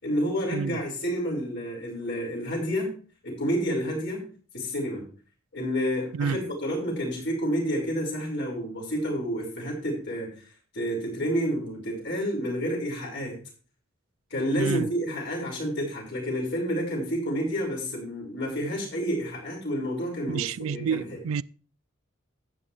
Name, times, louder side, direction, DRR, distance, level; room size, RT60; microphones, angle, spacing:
voice 1, 0.0-2.9 3.2-4.3 4.5-5.1 5.5-13.4 14.3-21.2, equal, 60° left, 5.5 m, -29 dB
voice 2, 20.3-21.4, right 6 dB, 80° right, 0.4 m, -29 dB
12.0 x 9.3 x 3.3 m
head